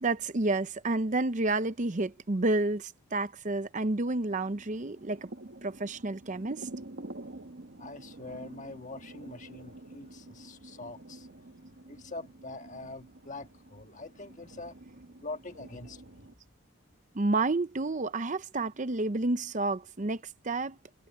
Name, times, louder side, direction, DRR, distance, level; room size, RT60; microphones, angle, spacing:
voice 1, 0.0-5.3 5.6-6.7 17.1-20.8, right 2 dB, 35° right, 0.7 m, -30 dB
sound 1, 4.3-16.3, right 2 dB, 55° right, 1.2 m, -48 dB
voice 2, 7.8-16.3, left 3 dB, 35° left, 1.7 m, -44 dB
head